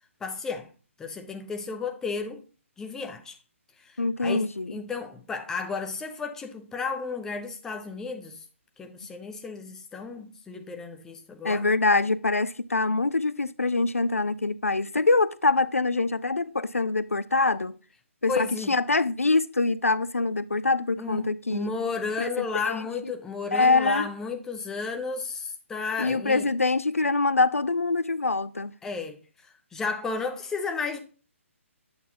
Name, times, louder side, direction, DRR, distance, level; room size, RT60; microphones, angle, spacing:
voice 1, 0.2-0.7 1.0-2.4 2.8-3.4 3.8-8.4 8.8-11.7 18.3-18.7 21.0-26.5 28.8-31.0, left 4 dB, 5° left, 0.6 m, -33 dB
voice 2, 4.0-4.7 11.4-17.7 18.2-21.7 22.2-22.8 23.5-24.1 26.0-28.7, left 3 dB, 85° left, 0.3 m, -24 dB
8.5 x 4.1 x 2.7 m
figure-of-eight pair, 135°, 7 cm